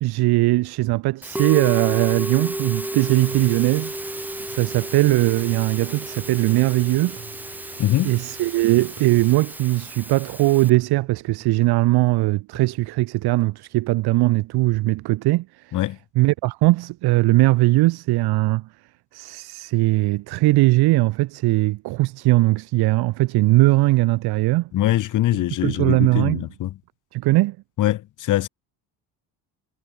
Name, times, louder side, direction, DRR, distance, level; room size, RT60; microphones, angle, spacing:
voice 1, 0.0-3.9 4.5-7.2 8.0-15.8 16.2-18.7 19.1-24.7 25.6-26.5 27.1-27.6, right 19 dB, 60° right, 0.7 m, -20 dB
Musical instrument, 1.2-10.7, right 1 dB, 5° right, 1.4 m, -32 dB
sound 1, 3.0-9.4, right 20 dB, 75° right, 3.7 m, -47 dB
sound 2, 7.2-8.5 9.0-12.1 12.5-14.0, right 7 dB, 40° right, 7.3 m, -49 dB
voice 2, 7.8-8.2 15.7-16.0 24.7-26.7 27.8-28.5, left 14 dB, 45° left, 0.7 m, -22 dB
cardioid pair, 100°, 44 cm